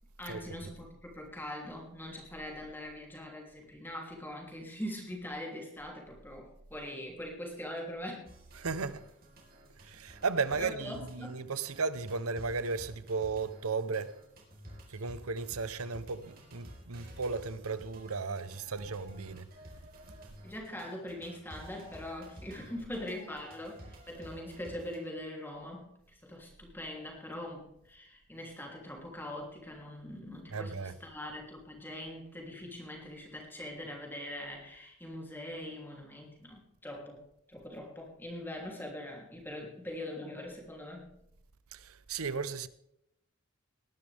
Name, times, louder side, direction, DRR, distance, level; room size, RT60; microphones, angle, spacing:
voice 1, 0.2-8.3 10.5-11.4 14.9-15.1 20.4-37.2 37.5-41.1, left 1 dB, 10° left, 3.1 m, -42 dB
sound 1, 8.3-25.0, equal, 45° right, 4.2 m, -52 dB
voice 2, 8.6-9.0 9.8-14.2 14.9-19.5 30.5-30.9 41.7-42.7, right 4 dB, 90° right, 0.9 m, -35 dB
19.5 x 11.5 x 3.5 m
head